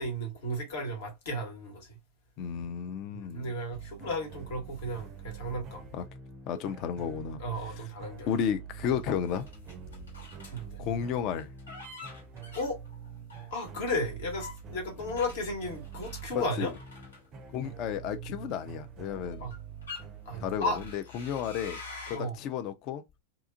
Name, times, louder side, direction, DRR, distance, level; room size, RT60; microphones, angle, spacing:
voice 1, 0.0-2.0 3.1-5.8 7.4-8.3 10.5-10.8 12.5-12.8 13.5-16.7 19.4-19.5 20.2-20.8 22.1-22.4, left 1 dB, 55° left, 1.2 m, -34 dB
voice 2, 2.4-3.5 5.9-6.0 6.5-7.4 7.8-7.9 8.3-9.5 10.8-11.5 16.3-16.7 17.5-19.5 20.4-21.8 22.1-23.0, left 8 dB, 40° left, 0.4 m, -33 dB
sound 1, 3.7-21.0, right 8 dB, 30° right, 0.4 m, -45 dB
sound 2, 9.1-10.6 11.4-13.8 14.4-17.7 18.5-18.7 19.3-20.0 20.7-22.2, left 4 dB, 75° left, 1.4 m, -47 dB
2.8 x 2.4 x 2.5 m
figure-of-eight pair, 90°, 0 cm